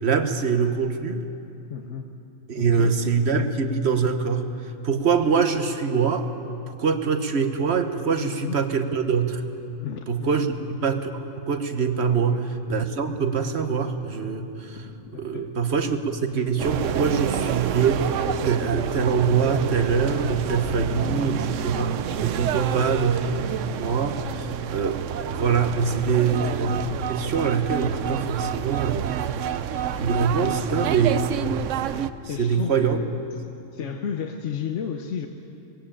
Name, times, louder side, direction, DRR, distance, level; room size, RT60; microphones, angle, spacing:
voice 1, 0.0-1.2 2.5-4.5 4.8-6.3 6.7-9.4 10.1-10.5 10.8-14.9 15.1-18.1 18.4-21.9 22.2-23.2 23.6-25.0 25.3-29.1 30.0-31.6 32.4-33.0, right 5 dB, 60° right, 8 dB, 1.3 m, -24 dB
voice 2, 1.7-2.1 2.6-3.0 8.2-8.6 9.8-10.5 12.1-12.4 15.1-15.5 21.1-21.3 22.4-23.0 26.3-26.4 30.3-30.7 32.3-33.2 33.7-35.3, left 7 dB, 70° left, 4 dB, 1.2 m, -34 dB
sound 1, 14.4-15.4 15.8-15.9 16.1-16.4 17.5-18.6 19.1-21.4, equal, 50° left, 1.8 m, -43 dB
sound 2, 16.6-32.1, right 9 dB, 80° right, 1.0 m, -28 dB
20.5 x 16.5 x 8.8 m, 2.8 s
omnidirectional pair, 1.3 m